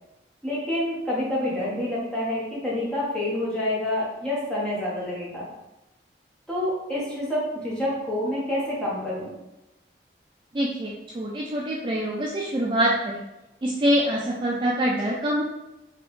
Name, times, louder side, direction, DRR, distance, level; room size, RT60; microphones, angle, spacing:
voice 1, 0.4-5.5 6.5-9.3, left 1 dB, 5° left, -7 dB, 1.2 m, -28 dB
voice 2, 10.5-13.2 13.6-15.4, equal, 25° right, -3 dB, 0.4 m, -25 dB
4.1 x 3.3 x 3.1 m, 0.95 s
head